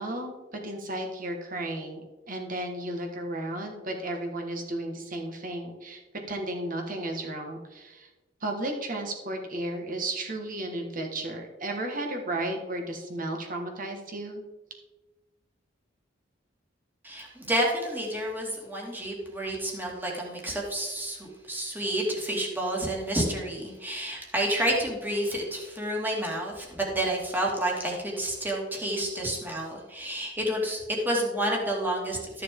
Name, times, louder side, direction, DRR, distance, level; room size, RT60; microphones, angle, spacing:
voice 1, 0.0-2.0 2.3-6.0 6.3-8.1 8.4-14.4, right 1 dB, 45° right, 2 dB, 1.7 m, -34 dB
voice 2, 17.0-32.4, right 1 dB, 10° right, -2 dB, 2.2 m, -30 dB
13.0 x 6.7 x 3.7 m, 1.1 s
head